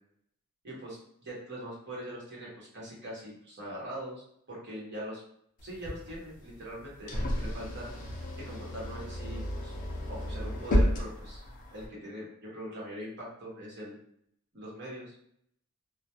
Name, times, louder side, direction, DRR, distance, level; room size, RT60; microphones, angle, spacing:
voice 1, 0.6-4.2 4.5-5.2 5.6-8.2 8.5-9.7 10.1-11.4 11.7-14.0 14.5-15.1, equal, 50° right, -4 dB, 0.9 m, -42 dB
sound 1, 5.6-11.9, equal, 35° left, 0.4 m, -32 dB
2.2 x 2.1 x 2.7 m, 0.70 s
head